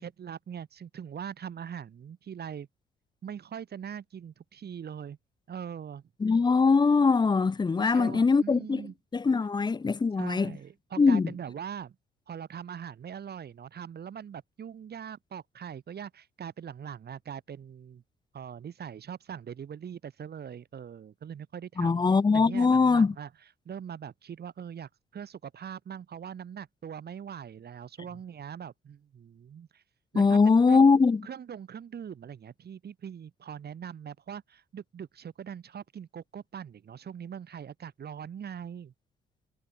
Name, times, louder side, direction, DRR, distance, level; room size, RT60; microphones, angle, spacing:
voice 1, 0.0-2.7 3.2-5.2 5.5-6.0 7.8-8.9 10.2-12.0 12.3-18.0 18.3-22.0 22.3-23.3 23.7-29.8 30.1-30.8 31.2-38.9, right 8 dB, 55° right, 4.1 m, -41 dB
voice 2, 6.2-10.5 11.0-11.3 21.8-23.1 30.2-31.2, left 4 dB, 20° left, 0.6 m, -22 dB
cardioid pair, 90°, 20 cm